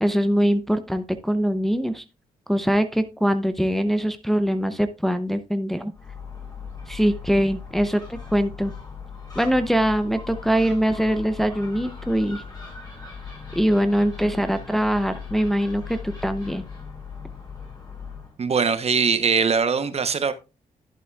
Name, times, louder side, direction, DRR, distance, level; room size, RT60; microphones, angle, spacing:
voice 1, 0.0-2.0 2.5-5.9 6.9-8.7 9.4-12.4 13.5-16.6, equal, ahead, 0.6 m, -23 dB
Gull seagull, 5.9-18.4, left 5 dB, 30° left, 5.2 m, -38 dB
voice 2, 18.4-20.3, right 5 dB, 45° right, 0.9 m, -21 dB
11.5 x 7.8 x 2.4 m
cardioid pair, 85°, 14 cm